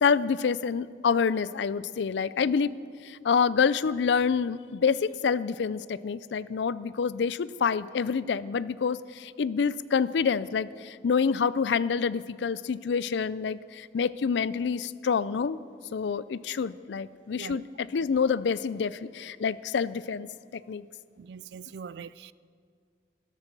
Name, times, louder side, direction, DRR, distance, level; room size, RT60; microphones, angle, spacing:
voice 1, 0.0-2.7 3.0-15.6 15.9-20.3 20.5-20.8, left 6 dB, 80° left, 0.4 m, -27 dB
voice 2, 21.2-22.3, right 6 dB, 70° right, 0.3 m, -42 dB
13.0 x 12.5 x 6.1 m
head